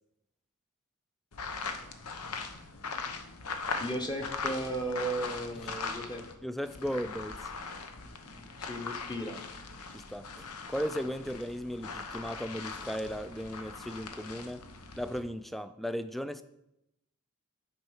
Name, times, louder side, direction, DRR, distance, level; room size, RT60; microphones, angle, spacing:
sound 1, 1.3-6.3 6.6-15.2, left 4 dB, 85° left, 0.9 m, -40 dB
voice 1, 3.8-6.2 8.3-9.4, right 1 dB, 20° left, 0.9 m, -35 dB
voice 2, 6.4-7.5 9.9-14.7 15.0-16.4, equal, ahead, 0.3 m, -36 dB
9.4 x 4.4 x 6.2 m
head